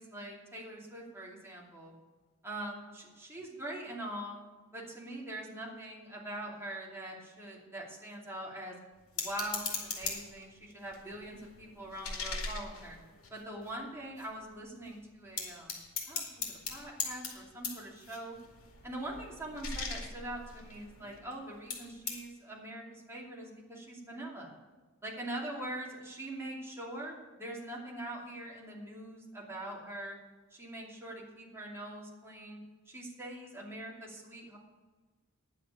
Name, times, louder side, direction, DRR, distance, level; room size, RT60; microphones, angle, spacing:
voice 1, 0.0-1.9 2.4-4.4 4.7-8.7 9.2-13.0 13.3-18.4 18.8-24.5 25.0-30.2 30.5-32.6 32.9-34.6, right 1 dB, 10° right, -3 dB, 2.7 m, -43 dB
sound 1, 9.2-10.4 10.9-13.7 14.2-14.3 14.5-14.9 15.4-21.3 21.7-22.2, left 5 dB, 90° left, 2.4 m, -40 dB
10.0 x 7.4 x 8.3 m, 1.3 s
head